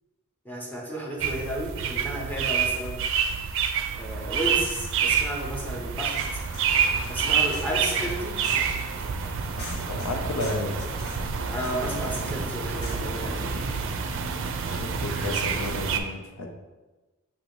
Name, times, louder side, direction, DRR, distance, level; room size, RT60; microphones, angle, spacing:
voice 1, 0.5-3.0 3.9-6.2 7.1-8.4 11.5-13.8, equal, 10° left, -3 dB, 0.6 m, -33 dB
sound 1, 1.2-16.0, right 6 dB, 60° right, 0.4 m, -28 dB
sound 2, 5.9-13.7, equal, 50° left, 1.0 m, -41 dB
voice 2, 9.5-10.9 14.6-16.5, left 2 dB, 80° left, 3 dB, 0.6 m, -32 dB
5.6 x 2.6 x 3.0 m, 1.2 s
head